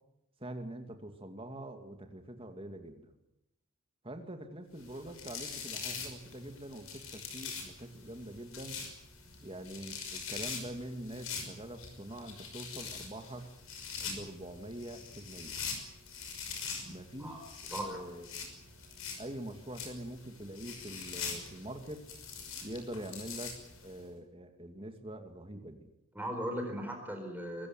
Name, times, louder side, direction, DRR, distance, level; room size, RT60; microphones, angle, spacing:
voice 1, 0.4-3.1 4.0-8.8 9.4-13.5 14.0-15.6 16.8-17.4 17.7-18.5 19.2-22.0 22.6-23.5 23.8-25.9, right 1 dB, 25° right, 6 dB, 2.5 m, -44 dB
sound 1, 4.8-24.0, left 5 dB, 65° left, 5.8 m, -43 dB
voice 2, 17.7-18.0 26.1-27.7, equal, 10° right, 3 dB, 4.4 m, -38 dB
23.5 x 15.5 x 9.6 m, 0.89 s
head